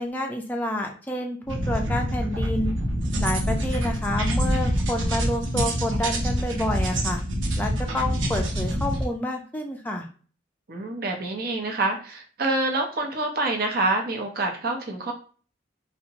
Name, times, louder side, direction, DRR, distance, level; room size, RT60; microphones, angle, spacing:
voice 1, 0.0-2.7 3.2-7.2 7.6-10.1, left 1 dB, 10° left, 2 dB, 0.4 m, -29 dB
sound 1, 1.5-9.1, equal, 90° right, 0.6 m, -26 dB
voice 2, 10.7-15.1, right 2 dB, 50° right, 2 dB, 0.6 m, -26 dB
2.7 x 2.0 x 2.8 m, 0.40 s
head